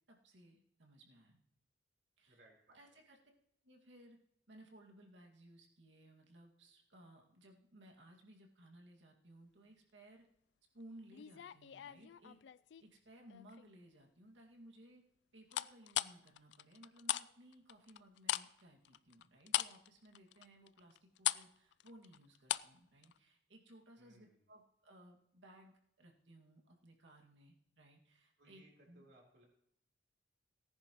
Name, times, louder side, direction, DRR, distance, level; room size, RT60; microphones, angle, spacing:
voice 1, 0.1-1.4 2.2-2.4 2.7-3.2 3.6-4.2 4.5-10.3 10.7-12.4 12.8-15.0 15.3-29.0, right 1 dB, 90° right, 1 dB, 2.0 m, -60 dB
voice 2, 2.3-3.0 24.0-24.5 28.4-29.5, right 1 dB, 65° right, -1 dB, 3.7 m, -66 dB
sound 1, 11.1-12.8 13.3-13.8 15.5-17.3 17.5-22.8 23.0-23.2, left 13 dB, 70° left, 0.3 m, -39 dB
18.0 x 10.5 x 3.0 m, 0.74 s
head